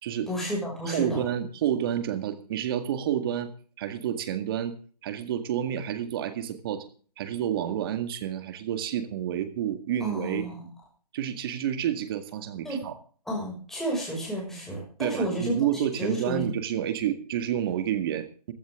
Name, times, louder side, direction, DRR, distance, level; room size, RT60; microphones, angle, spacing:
voice 1, 0.3-1.2 10.0-10.7 12.6-12.8 13.3-16.5, right 1 dB, ahead, -3 dB, 6.3 m, -31 dB
voice 2, 0.9-3.5 3.8-4.8 5.0-6.9 7.2-10.5 11.1-13.0 15.0-18.5, right 10 dB, 35° right, 10 dB, 1.9 m, -29 dB
15.5 x 14.0 x 3.7 m, 0.42 s
hypercardioid pair, 155°, 21 cm